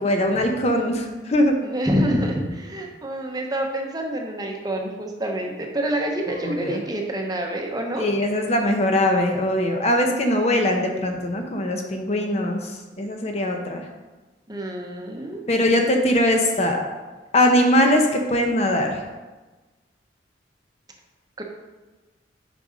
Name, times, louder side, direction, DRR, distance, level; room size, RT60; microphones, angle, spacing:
voice 1, 0.0-1.6 6.3-6.8 7.9-13.9 15.5-16.8 17.3-19.0, left 1 dB, 35° left, 3 dB, 0.7 m, -21 dB
voice 2, 1.6-8.1 14.5-15.4 21.4-21.5, right 1 dB, 20° right, 1 dB, 0.9 m, -27 dB
6.4 x 5.4 x 5.1 m, 1.2 s
head